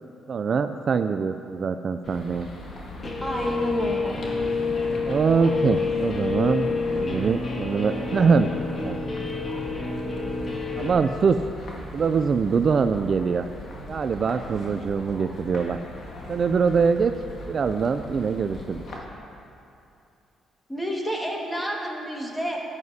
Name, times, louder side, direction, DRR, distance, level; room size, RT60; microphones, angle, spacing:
voice 1, 0.3-2.5 5.1-8.5 8.8-9.0 10.8-11.4 11.9-13.5 13.9-15.8 16.3-17.1 17.5-18.8, right 5 dB, 50° right, 9 dB, 0.3 m, -23 dB
sound 1, 2.0-19.0, left 1 dB, 60° left, 1.6 m, -40 dB
Guitar, 3.0-10.9, left 4 dB, 35° left, 1.2 m, -28 dB
voice 2, 3.2-4.2 20.7-22.6, equal, 10° left, -1 dB, 1.7 m, -29 dB
14.5 x 9.5 x 2.8 m, 2.6 s
cardioid pair, 90°, 0 cm